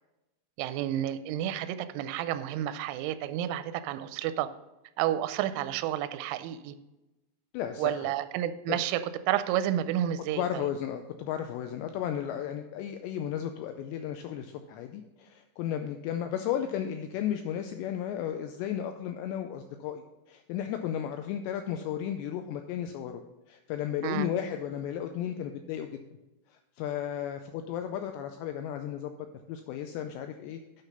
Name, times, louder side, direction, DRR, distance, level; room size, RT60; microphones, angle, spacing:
voice 1, 0.6-4.5 5.0-6.7 7.8-10.7 24.0-24.3, right 11 dB, 85° right, 12 dB, 3.0 m, -30 dB
voice 2, 7.5-8.1 8.7-8.8 10.3-20.0 20.3-23.2 23.5-26.0 26.5-30.6, left 10 dB, 90° left, 6 dB, 2.4 m, -34 dB
9.0 x 5.8 x 5.4 m, 0.99 s
omnidirectional pair, 5.6 m